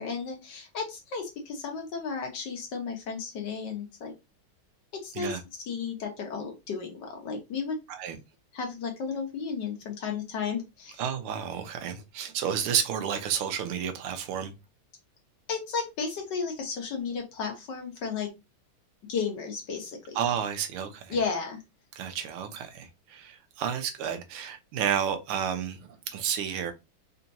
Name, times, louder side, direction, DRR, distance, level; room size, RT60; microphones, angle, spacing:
voice 1, 0.0-4.1 5.0-5.4 5.6-7.8 8.5-11.0 15.5-18.3 19.1-20.2 21.1-21.6, left 5 dB, 60° left, 1.5 m, -33 dB
voice 2, 11.0-14.5 20.1-21.2 21.9-26.7, right 8 dB, 90° right, 1.6 m, -31 dB
4.4 x 2.9 x 2.6 m
omnidirectional pair, 2.3 m